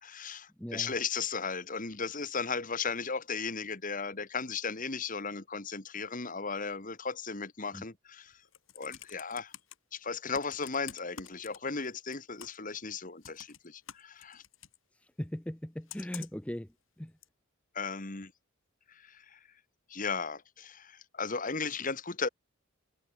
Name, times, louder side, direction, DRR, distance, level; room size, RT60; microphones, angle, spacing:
voice 1, 0.0-8.4 8.7-9.5 9.9-14.4 17.7-18.3 18.9-19.4 19.9-22.3, left 5 dB, 40° left, 1.6 m, -36 dB
voice 2, 0.6-0.9 7.7-7.8 15.2-16.7 17.0-17.1, equal, 5° left, 0.7 m, -38 dB
Computer keyboard, 8.3-9.7 10.3-11.9 12.1-12.7 13.2-14.8 15.9-16.5 17.2-17.3, left 9 dB, 65° left, 5.4 m, -48 dB
head